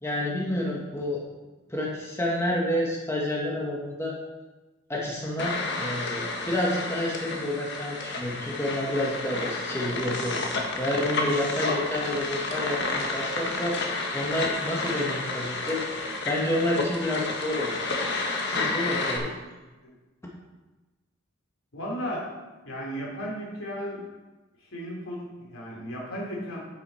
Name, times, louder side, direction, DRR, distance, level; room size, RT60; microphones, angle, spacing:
voice 1, 0.0-1.2 1.7-4.2 4.9-17.7 18.5-19.3, left 1 dB, 15° left, -3 dB, 1.3 m, -29 dB
sound 1, 5.4-19.2, left 3 dB, 55° left, 1.4 m, -30 dB
voice 2, 21.7-22.3 22.6-24.1 24.7-26.6, equal, 75° left, -3 dB, 3.2 m, -34 dB
8.9 x 8.1 x 4.3 m, 1.2 s
head